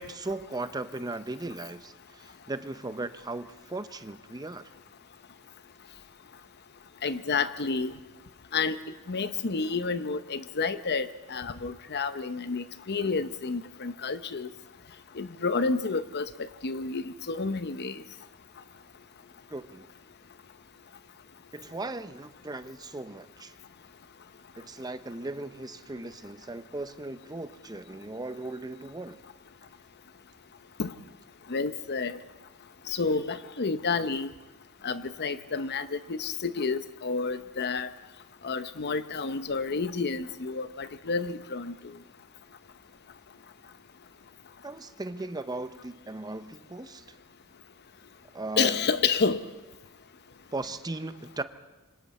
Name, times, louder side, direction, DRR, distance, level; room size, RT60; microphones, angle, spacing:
voice 1, 0.0-4.7 19.5-19.9 21.5-23.5 24.6-29.2 44.6-47.0 48.3-48.8 50.5-51.4, right 2 dB, 20° right, 11 dB, 0.7 m, -37 dB
voice 2, 7.0-7.9 8.5-8.8 9.1-14.5 15.1-18.0 30.8-30.9 31.5-32.2 32.9-34.3 34.8-37.9 38.4-41.7 48.6-49.4, left 4 dB, 50° left, 12 dB, 0.8 m, -30 dB
26.5 x 25.0 x 4.3 m, 1.1 s
head